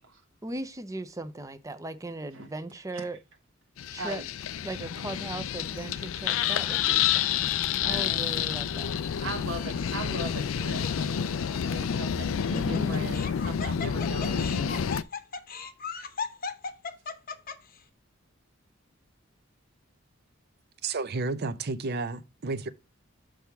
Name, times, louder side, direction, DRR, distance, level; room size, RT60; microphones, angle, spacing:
voice 1, 0.4-3.2 3.9-4.2 4.6-7.4 7.8-8.9 12.5-13.2, right 1 dB, 15° right, 0.6 m, -38 dB
sound 1, 3.8-15.0, left 8 dB, 80° left, 0.4 m, -29 dB
voice 2, 7.8-8.2 9.2-14.8, right 2 dB, 70° right, 1.1 m, -39 dB
Laughter, 9.7-10.2 10.8-10.9 12.2-17.8, left 5 dB, 45° left, 0.8 m, -37 dB
voice 3, 20.8-22.7, right 3 dB, 50° right, 0.6 m, -31 dB
6.3 x 3.5 x 5.7 m
head